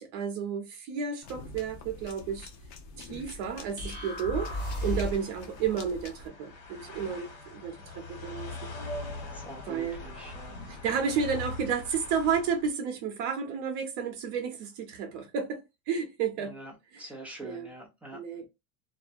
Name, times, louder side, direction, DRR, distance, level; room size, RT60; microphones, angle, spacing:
voice 1, 0.0-2.5 3.0-8.6 9.7-10.0 10.7-15.6 15.9-16.6 16.9-17.0 17.4-17.7 18.1-18.5, right 6 dB, 65° right, 0.8 m, -32 dB
sound 1, 1.2-6.3, left 4 dB, 45° left, 0.5 m, -46 dB
sound 2, 3.8-5.4, left 1 dB, 20° left, 0.9 m, -33 dB
sound 3, 4.3-12.7, left 2 dB, 65° left, 1.2 m, -42 dB
voice 2, 9.3-10.6 16.4-16.7 17.0-18.2, right 1 dB, 5° right, 0.4 m, -45 dB
2.4 x 2.0 x 2.5 m
cardioid pair, 170°, 38 cm